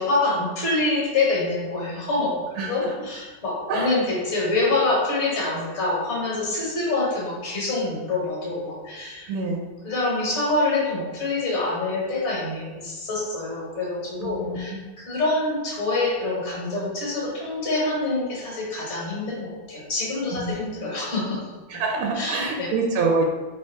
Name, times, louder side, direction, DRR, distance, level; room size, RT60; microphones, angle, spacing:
voice 1, 0.0-9.3 9.8-14.7 15.0-21.4 22.1-22.7, left 2 dB, 40° left, -4 dB, 1.4 m, -26 dB
voice 2, 2.6-2.9 3.7-4.0 9.3-9.6 14.2-14.6 20.3-20.5 21.7-23.2, right 3 dB, 80° right, 1 dB, 1.4 m, -26 dB
3.4 x 3.4 x 4.4 m, 1.2 s
omnidirectional pair, 2.3 m